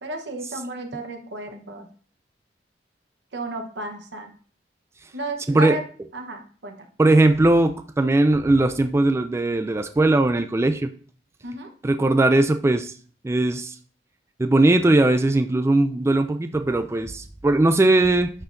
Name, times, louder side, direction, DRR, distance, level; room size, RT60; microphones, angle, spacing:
voice 1, 0.0-1.9 3.3-4.3 5.1-5.8 6.1-6.9 11.4-11.7, right 1 dB, 85° right, 4 dB, 1.0 m, -33 dB
voice 2, 5.5-5.8 7.0-10.9 11.8-12.9 13.2-13.7 14.4-18.3, right 2 dB, 15° right, 9 dB, 0.3 m, -19 dB
10.5 x 4.4 x 2.6 m, 0.43 s
head